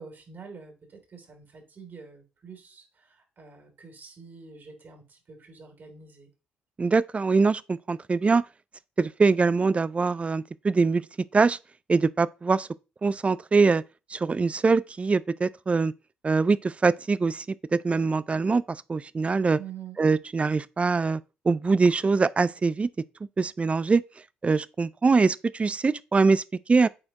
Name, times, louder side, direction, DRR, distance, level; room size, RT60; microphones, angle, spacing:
voice 1, 0.0-6.3 19.6-20.0, right 6 dB, 50° right, 2.9 m, -46 dB
voice 2, 6.8-8.4 9.0-11.0 11.3-11.6 11.9-12.7 13.0-13.8 14.1-15.9 16.2-17.4 17.7-19.6 20.0-21.2 21.5-22.9 23.4-24.0 24.4-26.4 26.7-26.9, right 4 dB, 30° right, 0.4 m, -23 dB
8.7 x 4.2 x 2.9 m
supercardioid pair, 60°, 4 cm